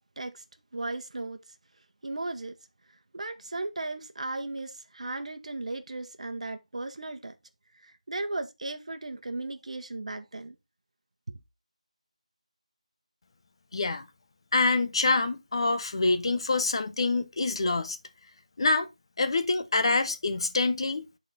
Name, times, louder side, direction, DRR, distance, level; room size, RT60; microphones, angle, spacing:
voice 1, 0.7-1.4 2.0-2.6 3.1-7.3 7.7-10.5, right 2 dB, 65° right, 1.1 m, -36 dB
voice 2, 13.7-14.0 14.5-18.0 18.6-18.9 19.2-21.1, left 3 dB, 45° left, 0.8 m, -26 dB
12.0 x 4.2 x 2.7 m
figure-of-eight pair, 165°, 4 cm